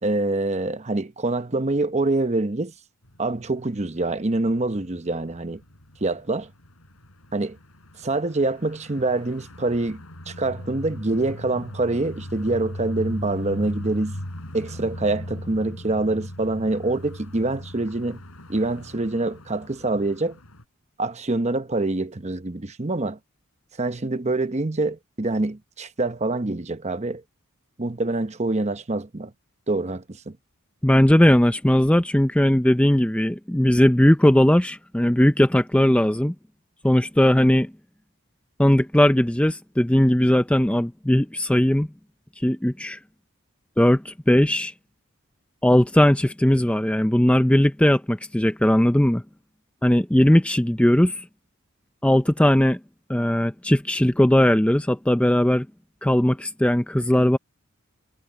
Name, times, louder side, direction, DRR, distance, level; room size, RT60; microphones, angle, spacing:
voice 1, 0.0-2.7 3.2-5.6 6.0-6.5 7.3-7.6 8.0-14.2 14.5-18.2 18.5-20.4 21.0-23.2 23.8-27.2 27.8-29.3 29.7-30.4, right 2 dB, 30° right, 0.9 m, -25 dB
sound 1, 3.0-20.6, left 1 dB, 75° left, 4.7 m, -38 dB
voice 2, 30.8-36.3 36.8-37.7 38.6-41.9 42.4-43.0 43.8-44.7 45.6-49.2 49.8-51.3 52.0-52.8 53.1-55.7 56.0-57.4, left 1 dB, 5° left, 0.5 m, -18 dB
head